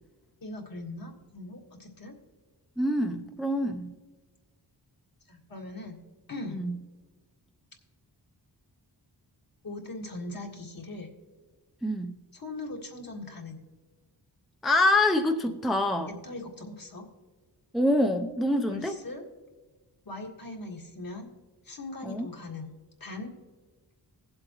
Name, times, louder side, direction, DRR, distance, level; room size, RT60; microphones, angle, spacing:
voice 1, 0.4-2.2 3.6-3.9 5.3-6.0 6.3-6.6 9.6-11.1 12.3-13.6 16.2-17.1 18.7-19.2 20.1-21.3 21.6-22.7 23.0-23.3, left 2 dB, 55° left, 0 dB, 1.9 m, -40 dB
voice 2, 2.8-3.9 6.5-6.7 11.8-12.1 14.6-16.1 17.7-19.0 22.0-22.3, left 1 dB, ahead, 4 dB, 0.6 m, -25 dB
18.0 x 7.7 x 3.0 m, 1.3 s
cardioid pair, 70°, 42 cm